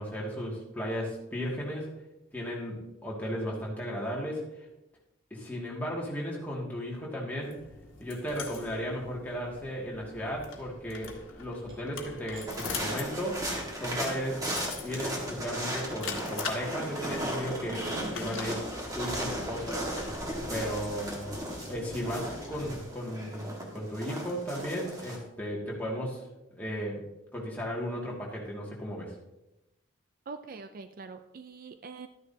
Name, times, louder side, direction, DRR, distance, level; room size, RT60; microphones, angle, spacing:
voice 1, 0.0-1.9 2.3-4.4 5.3-7.6 8.0-13.4 13.8-14.4 14.8-18.6 18.9-19.9 20.5-26.2 26.6-27.0 27.3-29.1, equal, 10° left, -4 dB, 2.1 m, -35 dB
sound 1, 7.4-22.8, left 4 dB, 75° left, 1.5 m, -43 dB
sound 2, 8.5-9.8 10.4-10.7 11.3-11.4 11.7-12.0 12.3-12.5 12.9-13.4, right 3 dB, 80° right, 3.2 m, -56 dB
sound 3, 12.5-25.2, right 1 dB, 20° right, 1.6 m, -36 dB
voice 2, 17.6-18.6 30.3-32.1, right 4 dB, 45° right, 10 dB, 0.4 m, -44 dB
12.5 x 9.7 x 2.8 m, 0.92 s
head